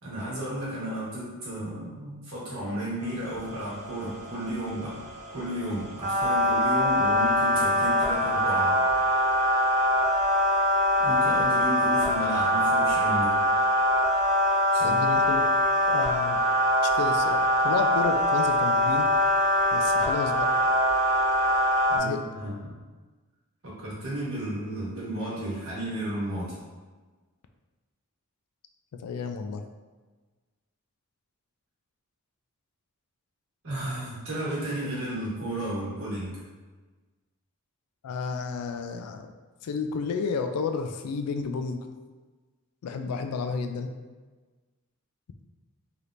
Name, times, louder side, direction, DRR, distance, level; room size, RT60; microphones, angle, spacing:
voice 1, 0.0-5.0 5.3-8.9 11.0-13.4 14.7-15.2 21.9-22.8 23.6-26.6 33.6-36.4, right 1 dB, 65° right, -7 dB, 1.3 m, -33 dB
sound 1, 3.1-22.0, equal, 30° right, 0.6 m, -24 dB
voice 2, 14.8-15.5 15.9-16.4 16.8-19.1 19.7-20.5 22.0-22.2 29.0-29.7 38.0-39.3 39.6-41.8 42.8-43.9, left 5 dB, 85° left, 7 dB, 0.3 m, -31 dB
3.4 x 2.8 x 2.5 m, 1.3 s
head